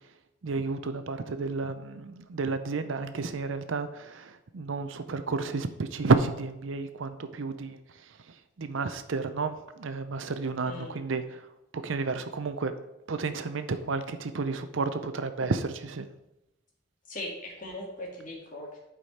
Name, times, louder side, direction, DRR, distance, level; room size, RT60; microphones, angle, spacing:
voice 1, 0.4-7.8 8.6-11.4 11.7-12.7 13.1-16.1, right 4 dB, 65° right, 10 dB, 0.6 m, -31 dB
voice 2, 10.6-11.0 17.1-18.8, left 1 dB, 40° left, -1 dB, 2.0 m, -39 dB
11.5 x 5.0 x 4.2 m, 0.92 s
head